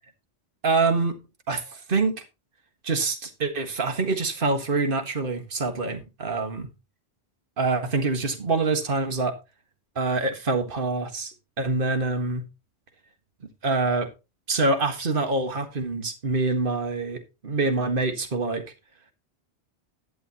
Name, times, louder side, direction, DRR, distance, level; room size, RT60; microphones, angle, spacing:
voice 1, 0.6-1.2 1.5-2.2 2.8-6.7 7.6-9.4 9.9-12.4 13.6-14.1 14.5-18.6, right 3 dB, 55° right, 1.8 m, -25 dB
11.5 x 10.0 x 3.0 m
omnidirectional pair, 1.1 m